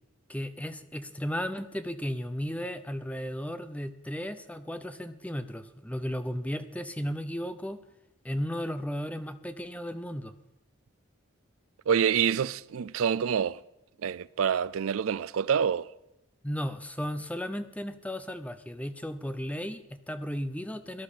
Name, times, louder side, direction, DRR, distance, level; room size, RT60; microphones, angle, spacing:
voice 1, 0.3-7.8 8.2-10.3 16.4-21.0, equal, 5° left, 0.7 m, -35 dB
voice 2, 11.9-13.6 14.0-15.9, right 7 dB, 70° right, 0.4 m, -27 dB
18.5 x 12.0 x 5.1 m
head